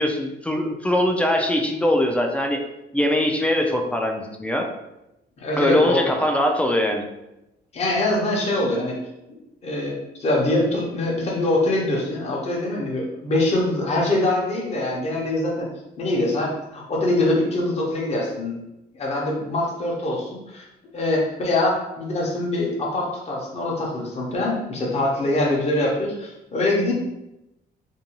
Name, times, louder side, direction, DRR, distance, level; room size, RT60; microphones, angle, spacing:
voice 1, 0.0-2.6 2.9-4.7 5.6-7.0, left 1 dB, 5° left, 3 dB, 0.3 m, -22 dB
voice 2, 5.4-6.1 7.7-9.0 9.6-15.7 16.0-18.5 18.9-20.7 20.9-26.9, left 2 dB, 35° left, -3 dB, 0.8 m, -23 dB
2.6 x 2.2 x 2.9 m, 0.90 s
cardioid pair, 110°, 18 cm